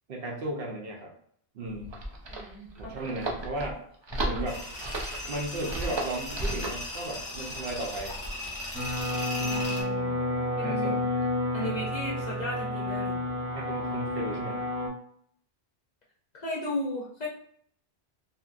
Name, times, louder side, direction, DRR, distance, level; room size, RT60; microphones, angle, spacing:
voice 1, 0.1-1.1 1.5-2.0 2.8-3.8 4.2-4.6 5.3-8.1 9.3-9.7 10.6-11.1 11.6-11.8 13.5-14.6, right 2 dB, 65° right, -1 dB, 0.9 m, -35 dB
sound 1, 1.7-6.8, right 1 dB, 50° right, 0.3 m, -34 dB
voice 2, 2.3-2.9 9.5-10.1 10.6-11.0 11.5-13.2 16.3-17.3, left 1 dB, 45° left, -4 dB, 0.7 m, -35 dB
Tools, 4.5-9.8, left 1 dB, 20° left, 0.9 m, -37 dB
sound 2, 8.7-14.9, left 1 dB, 15° right, 0.8 m, -30 dB
2.8 x 2.6 x 2.4 m, 0.64 s
omnidirectional pair, 1.1 m